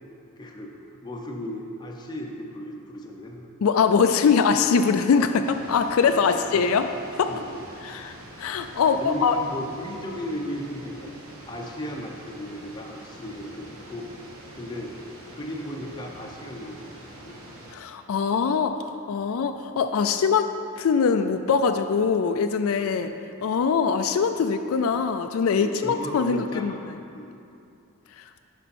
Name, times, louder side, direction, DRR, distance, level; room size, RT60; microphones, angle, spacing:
voice 1, 0.4-3.5 4.2-4.4 6.3-6.7 7.3-7.6 9.0-14.1 14.5-14.9 15.3-17.4 25.6-27.4, left 1 dB, 20° left, 0 dB, 0.7 m, -36 dB
voice 2, 3.6-6.9 7.2-7.3 7.9-9.4 17.7-20.5 20.8-23.1 23.4-26.7 28.2-28.3, left 5 dB, 80° left, 8 dB, 0.4 m, -22 dB
sound 1, 5.4-17.7, right 1 dB, 80° right, 1.3 m, -45 dB
9.9 x 5.5 x 4.2 m, 2.5 s
head